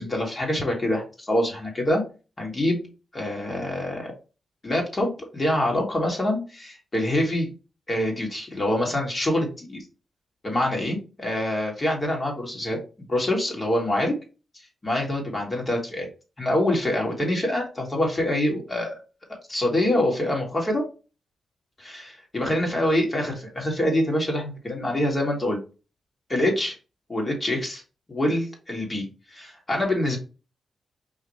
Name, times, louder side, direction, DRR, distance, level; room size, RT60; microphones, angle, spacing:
voice 1, 0.0-2.0 2.4-2.8 3.1-4.1 4.6-7.5 7.9-9.8 10.4-12.8 13.1-14.1 14.8-16.1 16.4-19.0 19.5-20.8 21.8-25.6 26.3-26.8 27.1-27.8 28.1-29.1 29.3-30.2, left 1 dB, 35° left, 0 dB, 2.2 m, -25 dB
4.8 x 2.9 x 3.2 m, 0.32 s
supercardioid pair, 45°, 0 cm